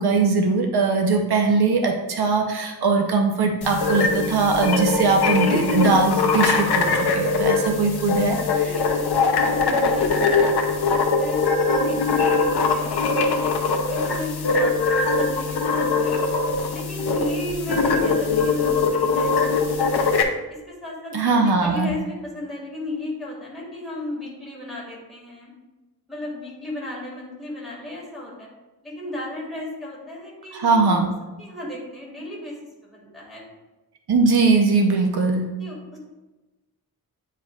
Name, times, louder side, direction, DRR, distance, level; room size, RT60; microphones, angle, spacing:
voice 1, 0.0-8.4 8.6-8.7 21.1-21.9 30.5-31.1 34.1-35.5, right 3 dB, 75° right, 2 dB, 0.8 m, -20 dB
sound 1, 3.6-20.2, left 4 dB, 80° left, 0.7 m, -22 dB
voice 2, 8.5-16.2 16.7-20.1 20.5-25.5 26.1-28.5 28.8-31.0 31.4-32.6 32.8-33.4 35.6-36.0, left 1 dB, ahead, -6 dB, 1.9 m, -35 dB
9.0 x 4.6 x 2.4 m, 1.1 s
wide cardioid pair, 170°, 38 cm